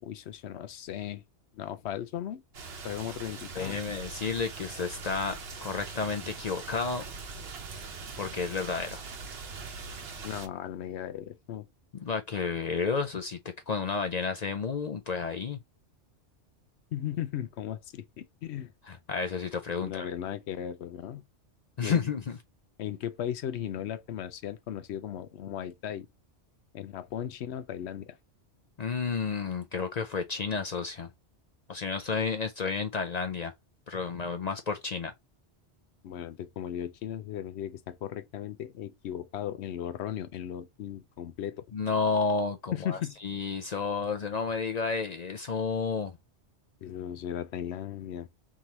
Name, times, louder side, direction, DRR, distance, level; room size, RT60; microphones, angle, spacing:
voice 1, 0.0-1.2 1.5-2.4 2.8-3.8 10.1-11.7 16.9-18.7 19.8-21.2 21.8-22.0 22.8-26.1 26.7-28.2 36.0-41.7 42.7-43.1 46.8-48.3, left 10 dB, 70° left, 0.8 m, -36 dB
sound 1, 2.5-10.5, right 4 dB, 60° right, 1.1 m, -42 dB
voice 2, 3.5-7.1 8.2-9.0 12.0-13.4 13.7-15.6 18.9-20.1 21.8-22.4 28.8-31.1 31.7-33.5 33.9-35.1 41.7-46.1, left 5 dB, 55° left, 0.5 m, -31 dB
3.7 x 3.0 x 4.0 m
omnidirectional pair, 1.2 m